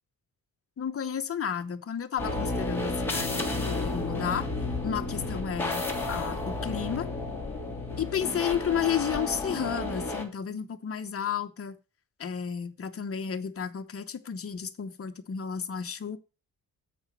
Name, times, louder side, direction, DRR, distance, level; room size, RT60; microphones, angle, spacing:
voice 1, 0.8-4.4 4.8-5.8 6.1-7.1 8.0-11.8 12.2-16.2, left 8 dB, 40° left, 7 dB, 0.9 m, -32 dB
sound 1, 2.2-10.2, left 2 dB, 5° left, 1.9 m, -32 dB
7.9 x 5.0 x 7.0 m, 0.31 s
wide cardioid pair, 155°, 37 cm